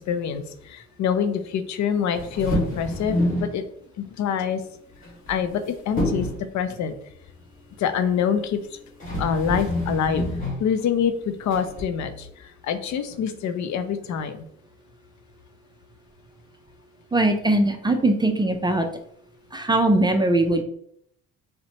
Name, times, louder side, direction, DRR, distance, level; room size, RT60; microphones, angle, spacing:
voice 1, 0.0-3.6 4.0-4.6 5.3-6.3 6.5-6.9 7.8-8.8 9.2-10.3 10.6-14.5, left 7 dB, 65° left, 9 dB, 0.5 m, -26 dB
sound 1, 2.1-3.6 5.0-5.6 6.0-6.5 8.5-8.6 9.0-10.7 11.5-11.8, equal, 25° left, 1.5 m, -27 dB
voice 2, 17.1-18.9 19.5-20.6, right 2 dB, 15° right, 5 dB, 0.4 m, -20 dB
4.1 x 2.1 x 2.8 m, 0.68 s
cardioid pair, 90°, 30 cm